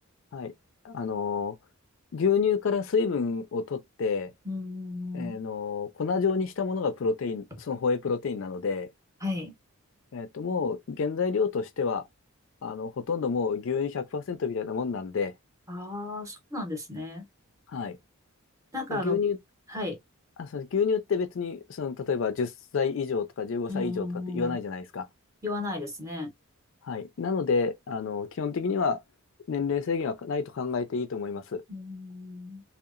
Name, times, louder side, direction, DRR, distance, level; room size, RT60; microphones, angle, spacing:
voice 1, 0.8-1.6 2.1-4.3 5.1-8.9 10.1-12.0 12.6-15.3 17.7-18.0 18.9-19.4 20.4-24.1 24.3-25.1 26.8-29.0 29.5-31.6, left 5 dB, 60° left, 0.4 m, -29 dB
voice 2, 4.4-5.4 9.2-9.6 15.7-17.3 18.7-19.2 19.7-20.0 23.7-24.6 25.4-26.3 31.7-32.6, left 2 dB, 15° right, 0.7 m, -34 dB
2.8 x 2.0 x 2.3 m
head